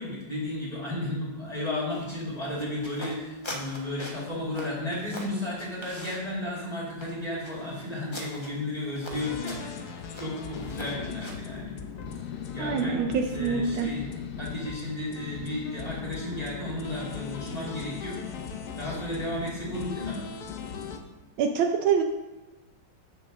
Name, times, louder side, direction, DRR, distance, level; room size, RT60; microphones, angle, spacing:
voice 1, 0.0-11.8 12.3-14.0 14.4-18.2 18.8-20.2, left 1 dB, 20° left, -6 dB, 2.3 m, -33 dB
sound 1, 1.9-11.6, left 1 dB, 45° left, 0.3 m, -44 dB
sound 2, 9.1-21.0, left 6 dB, 65° left, 1.0 m, -38 dB
voice 2, 12.6-13.9 21.4-22.0, right 6 dB, 75° right, 4 dB, 1.3 m, -25 dB
6.8 x 5.1 x 6.3 m, 1.1 s
omnidirectional pair, 2.4 m